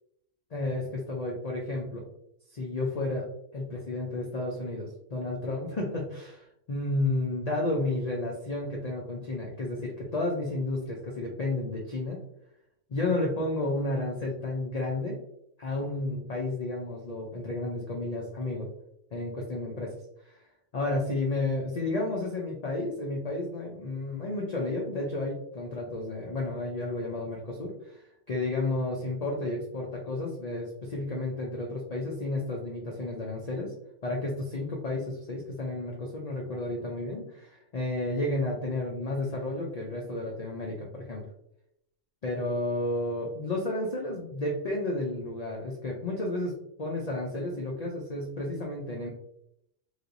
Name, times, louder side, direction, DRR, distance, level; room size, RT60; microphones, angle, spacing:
voice 1, 0.5-2.1 2.5-3.3 3.5-12.2 12.9-15.2 15.6-18.7 19.1-19.9 20.3-20.4 20.7-33.7 34.0-41.2 42.2-49.1, left 2 dB, 70° left, -2 dB, 0.4 m, -32 dB
3.2 x 2.8 x 2.5 m, 0.77 s
omnidirectional pair, 1.4 m